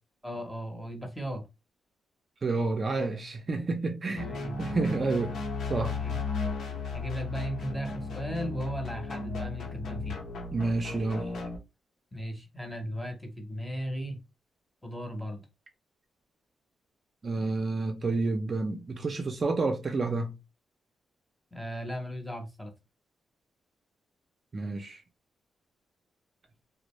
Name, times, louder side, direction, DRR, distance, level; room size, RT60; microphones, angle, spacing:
voice 1, 0.2-1.5 4.1-4.5 6.0-6.2 6.9-10.2 12.1-14.2 14.8-15.4 21.5-22.7, equal, 5° left, 0.7 m, -37 dB
voice 2, 2.4-4.3 4.6-5.4 5.7-6.0 10.5-11.4 17.2-20.3 24.5-25.0, right 3 dB, 35° right, 0.5 m, -29 dB
sound 1, 4.2-11.6, left 3 dB, 75° left, 0.8 m, -35 dB
2.5 x 2.0 x 3.0 m
cardioid pair, 120°, 0 cm